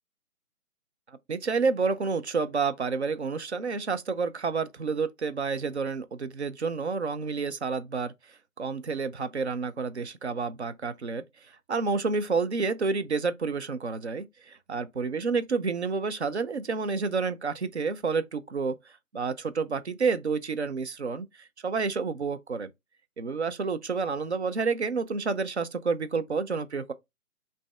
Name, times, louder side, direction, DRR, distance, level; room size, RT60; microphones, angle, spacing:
voice 1, 1.3-8.1 8.6-11.2 11.7-18.8 19.1-22.7 23.2-26.9, right 4 dB, 50° right, 0.6 m, -29 dB
5.3 x 2.7 x 3.4 m
figure-of-eight pair, 150°, 45 cm